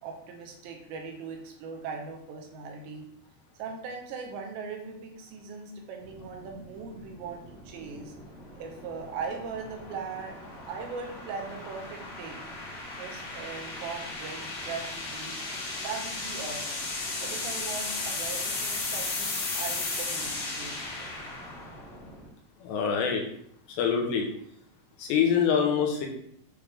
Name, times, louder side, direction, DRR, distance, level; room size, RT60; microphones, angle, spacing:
voice 1, 0.0-3.1 3.6-8.1 8.6-10.4 10.7-12.5 12.9-15.4 15.8-16.9 17.2-21.1, right 5 dB, 85° right, 1 dB, 3.3 m, -39 dB
sound 1, 6.0-22.3, left 3 dB, 55° left, 2.0 m, -36 dB
voice 2, 22.6-23.2 23.8-24.3 25.0-26.1, left 7 dB, 80° left, 1 dB, 3.1 m, -25 dB
8.7 x 3.4 x 3.6 m, 0.68 s
omnidirectional pair, 4.9 m